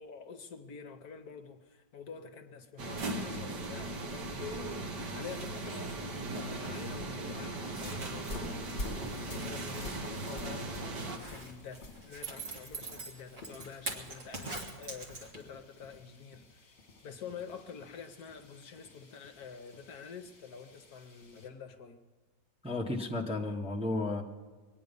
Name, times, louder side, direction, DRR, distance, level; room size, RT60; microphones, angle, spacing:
voice 1, 0.0-16.7 17.0-22.0, left 6 dB, 65° left, 7 dB, 1.2 m, -48 dB
sound 1, 2.8-11.2, right 2 dB, 70° right, 1.9 m, -38 dB
sound 2, 7.8-21.5, left 2 dB, 35° left, 1.8 m, -48 dB
Zipper (clothing), 11.0-15.6 16.0-16.1, right 3 dB, 45° right, 2.1 m, -42 dB
voice 2, 22.6-24.2, left 2 dB, 5° right, 0 dB, 0.9 m, -33 dB
22.5 x 9.5 x 5.3 m, 1.3 s
omnidirectional pair, 1.9 m